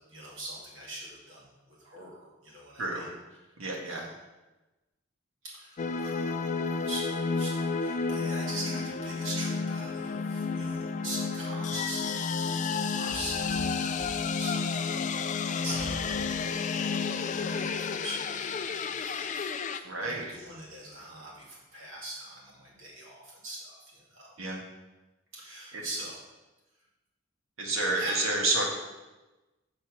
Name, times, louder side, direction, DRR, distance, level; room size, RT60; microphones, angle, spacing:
voice 1, 0.1-3.1 3.4-3.5 3.8-4.1 5.4-12.3 13.0-14.0 14.4-16.6 17.2-24.3 25.3-26.2 27.9-28.3, right 1 dB, 70° right, -5 dB, 2.5 m, -42 dB
voice 2, 2.8-3.1 3.6-4.0 19.8-20.3 24.4-24.6 25.7-25.8 27.6-28.6, right 2 dB, 90° right, -1 dB, 1.7 m, -29 dB
sound 1, 5.8-19.8, left 5 dB, 40° left, 0.3 m, -31 dB
sound 2, 13.0-14.5 15.2-15.3 15.7-16.5, equal, ahead, 1.3 m, -43 dB
6.5 x 4.0 x 6.4 m, 1.1 s
head